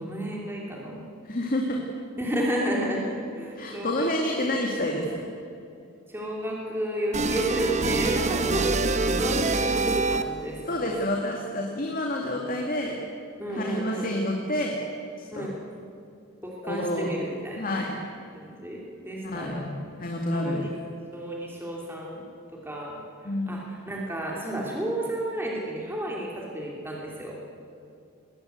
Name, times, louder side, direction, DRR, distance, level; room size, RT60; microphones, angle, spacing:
voice 1, 0.1-1.0 2.2-4.1 4.4-4.5 6.1-11.0 13.4-14.1 15.3-15.6 16.4-17.8 18.3-19.7 20.3-20.7 21.1-22.2 22.6-23.0 23.5-27.3, right 1 dB, 10° right, -2 dB, 2.9 m, -32 dB
voice 2, 1.2-1.8 3.5-5.3 10.7-13.0 13.5-14.8 15.2-15.5 16.6-18.0 19.2-19.7 20.0-20.7 23.2-23.6, left 1 dB, 40° left, 1 dB, 2.3 m, -29 dB
sound 1, 7.1-10.5, right 3 dB, 35° right, 1.1 m, -25 dB
21.0 x 18.5 x 8.1 m, 2.6 s
head